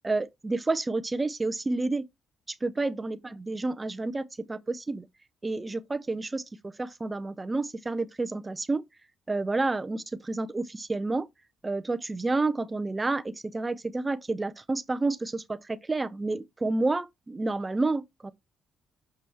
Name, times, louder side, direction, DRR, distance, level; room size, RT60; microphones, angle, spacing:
voice 1, 0.0-2.0 2.5-5.1 5.4-8.8 9.3-11.3 11.6-18.3, right 3 dB, 20° right, 0.6 m, -30 dB
7.0 x 5.7 x 3.4 m
cardioid pair, 85°, 0 cm